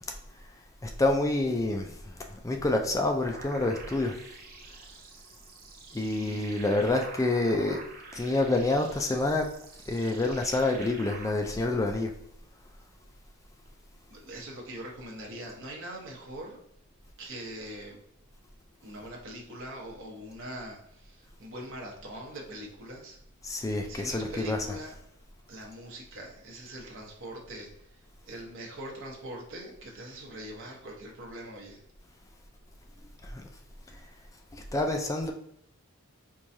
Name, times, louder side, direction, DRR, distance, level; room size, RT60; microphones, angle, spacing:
voice 1, 0.8-4.2 5.9-7.8 8.1-9.5 9.9-12.1 23.4-24.6 33.2-33.5 33.9-34.0 34.5-35.3, left 2 dB, 15° left, 0.3 m, -28 dB
sound 1, 3.2-11.3, right 3 dB, 45° right, 0.6 m, -47 dB
voice 2, 6.0-6.6 14.1-16.6 17.2-18.0 18.8-23.2 23.9-24.9 25.5-31.8, right 1 dB, 60° right, 1.0 m, -42 dB
4.6 x 2.3 x 2.7 m
head